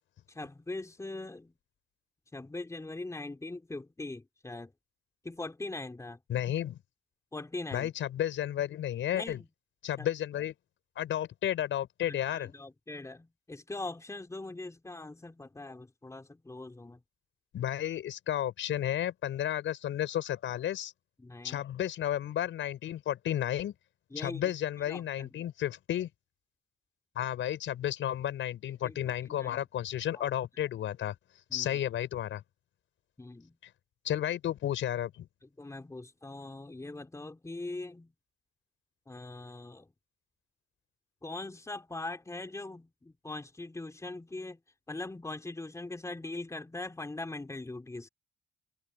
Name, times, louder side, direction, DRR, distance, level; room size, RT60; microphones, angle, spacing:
voice 1, 0.3-1.5 2.3-4.7 5.2-6.2 7.3-7.9 9.1-9.5 10.0-10.1 12.1-17.0 21.2-21.6 24.1-25.4 28.8-29.6 30.1-30.2 31.5-31.8 33.2-33.6 35.6-38.1 39.1-39.9 41.2-44.6 44.9-48.1, left 2 dB, 15° left, 3.3 m, -41 dB
voice 2, 6.3-6.8 7.7-9.4 9.8-10.5 11.0-12.5 17.5-20.9 21.4-23.7 24.1-26.1 27.1-31.1 31.5-32.4 34.0-35.3, left 11 dB, 75° left, 6.3 m, -32 dB
open air
cardioid pair, 90°, 20 cm